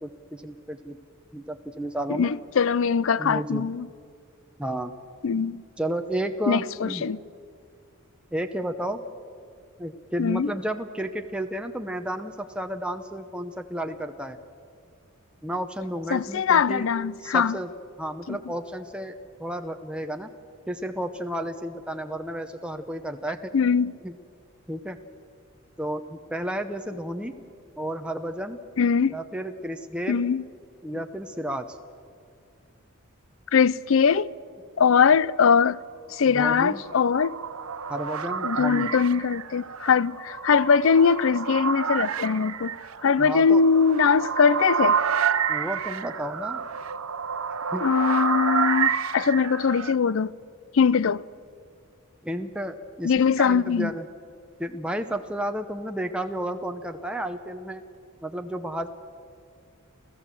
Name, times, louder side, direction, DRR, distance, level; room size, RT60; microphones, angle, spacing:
voice 1, 0.0-1.0 1.3-2.3 3.2-3.7 4.6-4.9 5.8-7.1 8.3-9.0 9.8-14.4 15.4-16.9 17.2-17.7 18.0-19.1 19.4-20.3 20.7-23.5 24.0-24.1 24.7-25.0 25.8-27.3 27.8-28.6 29.1-30.3 30.8-31.8 36.3-36.8 37.9-38.9 43.2-43.6 45.5-46.6 47.7-47.9 52.2-54.1 54.6-57.8 58.2-58.9, right 1 dB, 5° right, 0.7 m, -32 dB
voice 2, 2.1-3.9 5.2-5.6 6.5-7.2 10.2-10.5 16.1-17.6 18.3-18.4 23.5-23.9 28.8-29.1 30.1-30.4 33.5-34.3 34.8-35.8 36.1-37.4 38.4-42.7 43.0-45.0 47.8-50.3 50.7-51.2 53.0-53.9, left 6 dB, 65° left, 0.5 m, -21 dB
sound 1, 36.5-50.0, right 7 dB, 85° right, 0.8 m, -29 dB
29.5 x 14.0 x 7.5 m
head